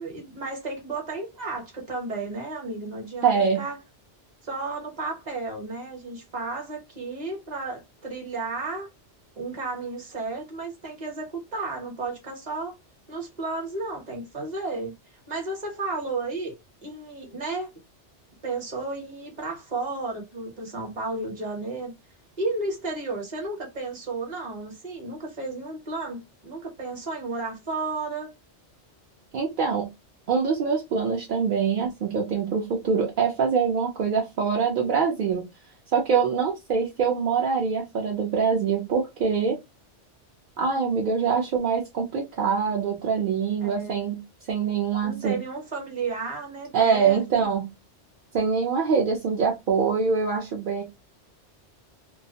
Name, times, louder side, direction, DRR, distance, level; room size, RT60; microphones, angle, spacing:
voice 1, 0.0-3.8 4.4-8.9 9.4-12.7 13.1-14.9 15.3-16.5 16.8-17.7 18.4-21.9 22.4-28.3 43.6-44.1 45.0-47.5, right 3 dB, 40° right, 0.9 m, -33 dB
voice 2, 3.2-3.6 29.3-29.9 30.3-35.5 35.9-39.6 40.6-45.4 46.7-47.7 48.3-50.8, right 6 dB, 55° right, 0.6 m, -24 dB
2.3 x 2.1 x 2.7 m
omnidirectional pair, 1.2 m